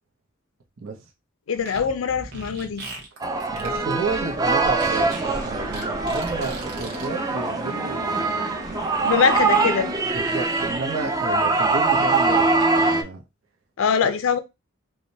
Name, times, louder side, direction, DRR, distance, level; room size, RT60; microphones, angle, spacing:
voice 1, 0.8-1.1 3.5-8.4 10.0-13.2, right 3 dB, 80° right, 0.8 m, -32 dB
voice 2, 1.5-2.8 9.1-9.9 13.8-14.4, left 6 dB, 85° left, 0.4 m, -22 dB
Fart, 1.6-7.1, right 3 dB, 55° right, 1.1 m, -39 dB
sound 1, 3.2-13.0, right 3 dB, 20° right, 0.4 m, -23 dB
sound 2, 4.8-10.0, equal, 35° right, 1.2 m, -36 dB
4.7 x 2.2 x 2.7 m
head